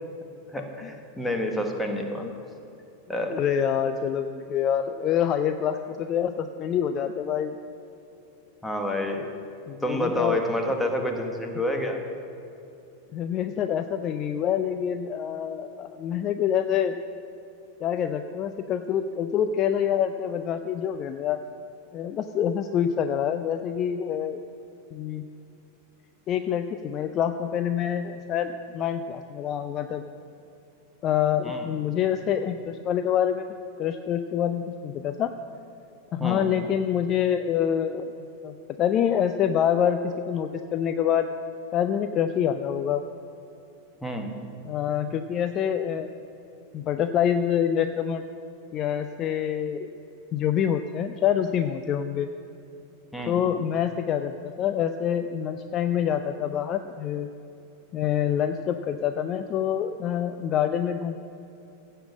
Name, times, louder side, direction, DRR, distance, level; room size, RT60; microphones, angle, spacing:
voice 1, 0.5-2.3 3.1-3.4 8.6-9.2 9.8-12.0 31.4-31.7 36.2-36.5 44.0-44.4 53.1-53.4, left 1 dB, 5° left, 3 dB, 1.4 m, -28 dB
voice 2, 3.3-7.5 9.7-10.4 13.1-17.0 17.8-21.4 21.9-24.4 24.9-25.2 26.3-30.0 31.0-33.4 33.8-35.3 36.1-41.3 41.7-43.0 44.6-46.1 46.7-48.2 48.7-49.9 50.3-52.3 53.3-57.3 57.9-61.2, left 9 dB, 30° left, 8 dB, 0.5 m, -26 dB
16.0 x 5.6 x 7.3 m, 2.8 s
figure-of-eight pair, 90°, 0 cm